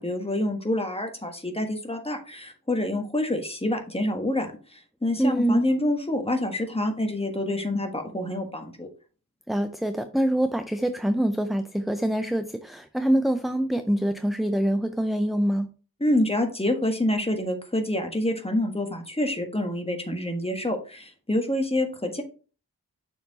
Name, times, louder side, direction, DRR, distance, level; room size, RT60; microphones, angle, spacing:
voice 1, 0.0-8.9 16.0-22.2, left 1 dB, 15° left, 1.4 m, -27 dB
voice 2, 5.2-5.7 9.5-15.7, right 1 dB, ahead, 0.4 m, -25 dB
6.6 x 4.6 x 4.0 m
wide cardioid pair, 70°, 37 cm